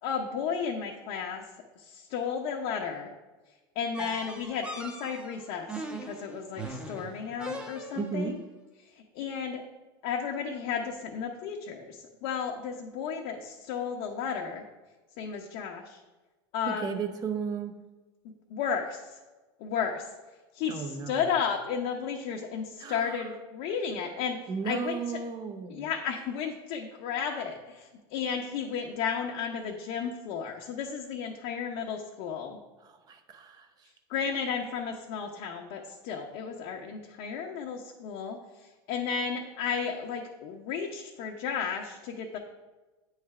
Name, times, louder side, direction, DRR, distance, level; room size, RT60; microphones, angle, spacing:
voice 1, 0.0-1.4 1.8-3.1 3.8-5.7 6.0-8.4 8.8-9.6 10.0-14.6 15.2-16.0 16.5-17.0 18.5-19.2 19.6-20.1 20.5-24.4 24.6-25.2 25.7-32.6 34.1-42.4, left 6 dB, 60° left, 1 dB, 0.8 m, -33 dB
sound 1, 3.9-8.2, right 1 dB, 5° right, 0.9 m, -40 dB
voice 2, 7.9-8.4 16.6-17.7 20.7-21.2 22.8-23.2 24.5-25.9 32.8-33.9, right 5 dB, 30° right, 6 dB, 0.8 m, -35 dB
8.7 x 3.2 x 4.7 m, 1.2 s
supercardioid pair, 120°, 13 cm